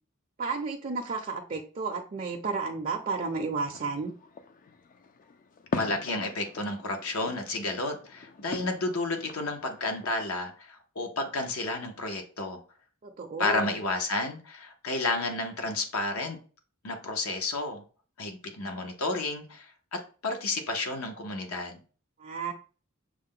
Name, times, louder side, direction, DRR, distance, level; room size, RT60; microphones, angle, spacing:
voice 1, 0.4-4.1 13.0-13.8 22.2-22.5, right 4 dB, 35° right, 1 dB, 0.5 m, -32 dB
sound 1, 3.0-10.5, left 4 dB, 40° left, 0.4 m, -42 dB
voice 2, 5.7-12.6 13.4-16.4 16.8-17.8 18.2-21.8, left 2 dB, 70° left, 4 dB, 0.8 m, -31 dB
6.3 x 2.1 x 3.7 m, 0.39 s
head